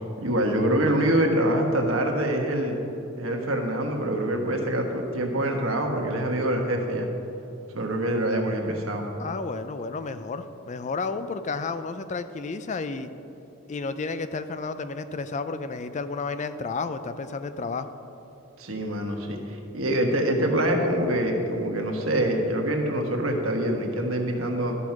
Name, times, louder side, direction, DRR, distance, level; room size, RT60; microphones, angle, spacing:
voice 1, 0.2-2.8 3.2-7.1 7.7-9.1 18.6-24.8, right 1 dB, 70° right, 2 dB, 1.4 m, -25 dB
voice 2, 9.2-13.1 13.7-17.9, left 4 dB, 35° left, 11 dB, 0.4 m, -32 dB
12.5 x 6.2 x 5.9 m, 2.8 s
head